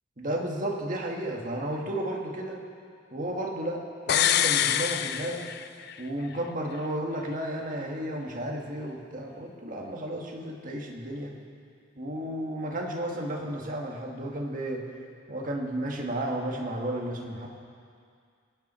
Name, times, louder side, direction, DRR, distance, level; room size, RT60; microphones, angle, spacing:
voice 1, 0.2-2.6 3.1-5.5 6.0-11.3 12.0-14.8 15.3-17.5, right 1 dB, 40° right, 0 dB, 1.8 m, -33 dB
sound 1, 4.1-6.0 6.3-6.4, left 10 dB, 55° left, 0.4 m, -25 dB
24.0 x 9.6 x 4.4 m, 2.2 s
head